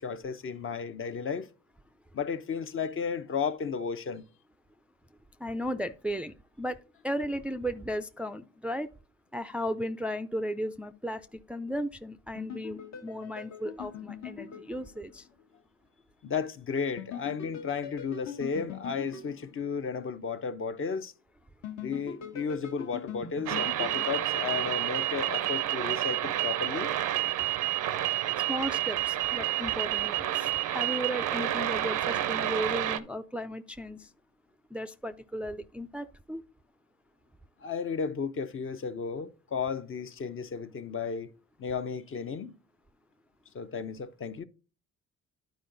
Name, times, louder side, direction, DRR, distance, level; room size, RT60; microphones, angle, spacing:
voice 1, 0.0-1.5 2.1-4.2 16.2-21.1 21.8-27.0 37.6-41.3 41.6-42.6 43.5-44.4, left 6 dB, 45° left, 0.7 m, -34 dB
voice 2, 5.4-6.8 7.0-8.9 9.3-15.3 28.5-34.1 34.7-36.4, equal, 5° right, 0.4 m, -35 dB
sound 1, 12.4-15.4 17.0-20.2 21.6-25.0, left 8 dB, 65° left, 1.3 m, -42 dB
sound 2, 23.5-33.0, right 14 dB, 90° right, 0.7 m, -29 dB
10.5 x 4.7 x 3.9 m
cardioid pair, 90°, 30 cm